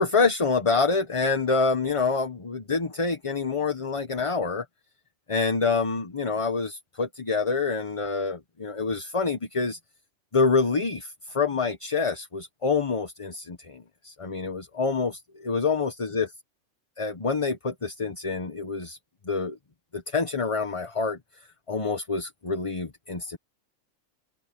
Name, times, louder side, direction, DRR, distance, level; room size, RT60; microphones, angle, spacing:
voice 1, 0.0-4.6 5.3-9.8 10.3-16.3 17.0-19.0 19.3-19.6 19.9-21.2 21.7-23.4, left 4 dB, 25° left, 1.1 m, -26 dB
omnidirectional pair, 1.4 m